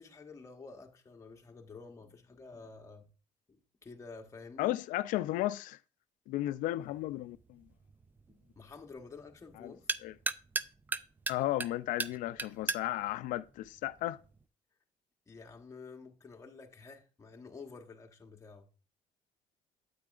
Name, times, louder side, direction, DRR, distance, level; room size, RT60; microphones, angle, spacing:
voice 1, 0.0-3.1 3.5-4.8 8.6-9.9 15.3-18.7, left 4 dB, 20° left, 1.1 m, -50 dB
voice 2, 4.6-5.8 6.3-7.6 9.6-9.7 10.0-10.1 11.3-14.2, left 15 dB, 85° left, 0.4 m, -34 dB
sound 1, 6.8-14.4, right 3 dB, 15° right, 0.3 m, -40 dB
8.6 x 8.5 x 2.4 m
cardioid pair, 125°, 13 cm